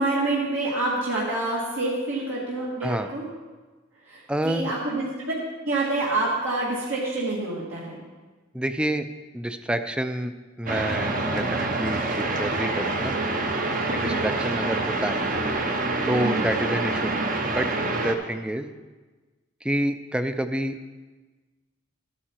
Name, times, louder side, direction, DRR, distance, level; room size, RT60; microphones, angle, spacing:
voice 1, 0.0-3.2 4.1-4.2 4.4-5.3 5.6-8.0 13.9-14.2 16.1-16.4, right 2 dB, 70° right, -6 dB, 2.0 m, -27 dB
voice 2, 4.3-4.7 8.5-9.1 9.3-10.3 10.6-13.1 13.9-15.3 16.1-17.2 17.4-17.7 17.9-18.7 19.6-21.0, right 1 dB, 5° right, 9 dB, 0.5 m, -28 dB
sound 1, 10.7-18.1, right 2 dB, 45° right, 1.0 m, -26 dB
12.5 x 9.4 x 4.4 m, 1.3 s
head